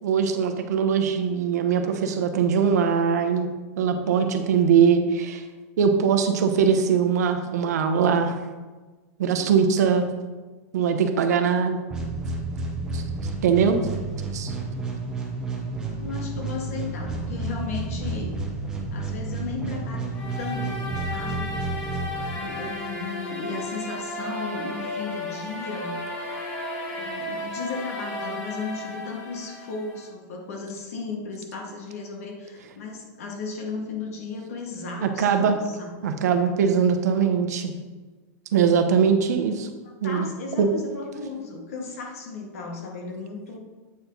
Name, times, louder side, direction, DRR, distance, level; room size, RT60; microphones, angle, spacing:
voice 1, 0.0-3.5 3.8-5.4 5.8-8.4 9.2-10.1 10.7-11.8 12.9-13.0 13.4-13.8 14.3-14.6 35.0-35.6 36.0-37.7 38.5-39.7 40.0-40.3 40.6-40.7, right 6 dB, 75° right, 7 dB, 0.8 m, -21 dB
voice 2, 4.1-4.8 16.0-18.3 18.9-21.6 22.3-26.0 26.9-35.9 40.0-43.6, left 4 dB, 60° left, 1 dB, 1.6 m, -35 dB
sound 1, 11.9-22.8, right 3 dB, 5° right, 0.7 m, -31 dB
sound 2, 20.1-30.1, left 1 dB, 15° left, 1.2 m, -34 dB
8.4 x 4.6 x 3.9 m, 1.3 s
supercardioid pair, 180°, 9 cm